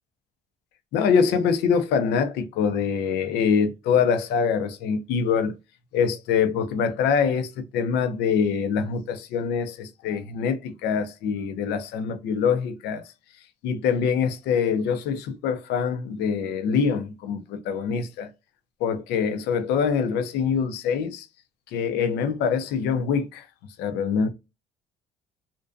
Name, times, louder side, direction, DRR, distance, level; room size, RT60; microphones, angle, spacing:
voice 1, 0.9-5.5 5.9-13.0 13.6-18.3 18.8-21.3 21.7-23.4 23.8-24.3, left 6 dB, 80° left, 0.5 m, -24 dB
2.5 x 2.2 x 2.3 m
cardioid pair, 110°, 17 cm